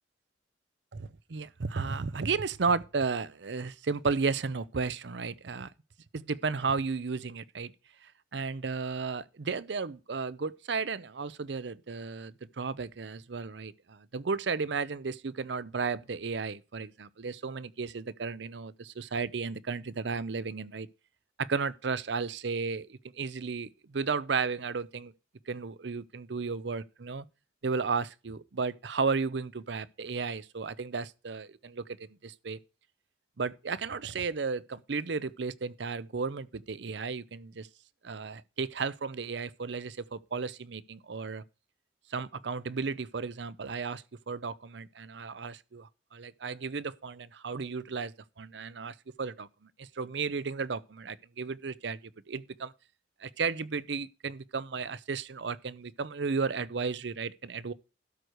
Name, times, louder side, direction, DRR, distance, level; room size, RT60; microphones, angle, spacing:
voice 1, 0.9-5.7 6.1-7.7 8.0-20.9 21.4-25.1 25.5-27.2 27.6-31.8 32.2-32.6 33.4-37.7 38.0-41.4 42.1-49.5 49.8-52.0 52.3-52.7 53.2-57.7, right 4 dB, 70° right, 0.6 m, -34 dB
12.5 x 4.7 x 6.4 m
head